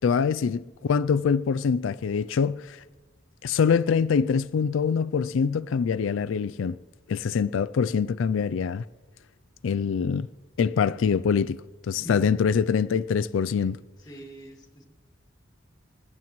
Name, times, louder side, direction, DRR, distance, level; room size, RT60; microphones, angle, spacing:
voice 1, 0.0-2.8 3.4-6.8 7.1-8.8 9.6-10.3 10.6-11.6 11.8-13.8, left 6 dB, 90° left, 0.4 m, -24 dB
voice 2, 11.9-12.4 13.6-14.8, equal, 20° left, 2.3 m, -45 dB
27.5 x 15.0 x 3.1 m
head